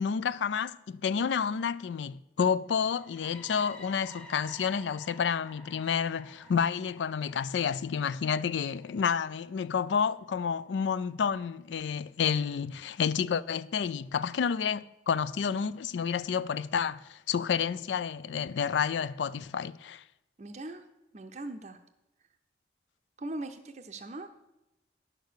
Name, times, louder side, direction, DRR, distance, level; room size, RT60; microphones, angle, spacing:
voice 1, 0.0-20.0, left 6 dB, 90° left, 0.4 m, -30 dB
sound 1, 2.8-10.7, equal, 5° left, 0.7 m, -53 dB
voice 2, 20.4-20.8 21.1-21.8 23.2-24.3, right 2 dB, 40° right, 0.5 m, -40 dB
10.5 x 6.8 x 6.3 m
head